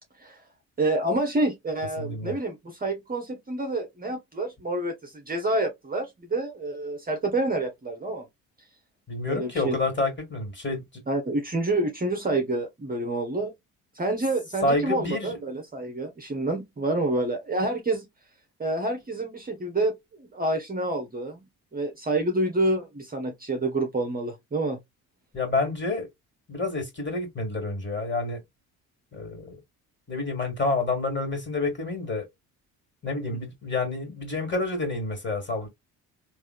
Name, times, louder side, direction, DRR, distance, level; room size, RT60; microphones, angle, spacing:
voice 1, 0.8-8.3 9.3-9.8 11.1-13.5 13.9-18.1 18.6-19.9 20.2-21.4 21.7-24.8, right 2 dB, 20° right, 0.9 m, -28 dB
voice 2, 2.0-2.4 9.1-11.0 14.6-15.4 25.3-26.1 26.5-28.4 29.1-29.6 30.1-32.3 33.0-35.7, left 3 dB, 30° left, 2.0 m, -28 dB
3.5 x 2.6 x 2.3 m
supercardioid pair, 65°, 39 cm